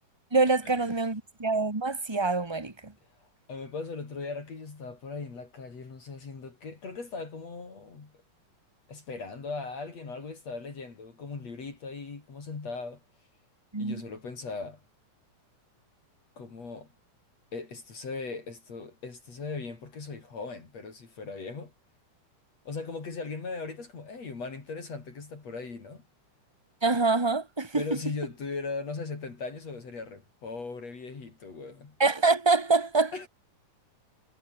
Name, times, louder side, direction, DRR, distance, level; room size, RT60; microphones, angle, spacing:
voice 1, 0.3-2.9 13.7-14.0 26.8-27.8 32.0-33.3, right 3 dB, 10° right, 1.3 m, -25 dB
voice 2, 3.2-8.1 8.9-13.0 13.8-14.8 16.4-16.9 17.5-21.7 22.7-26.0 27.7-32.0 33.1-33.3, left 4 dB, 55° left, 5.4 m, -39 dB
omnidirectional pair, 3.6 m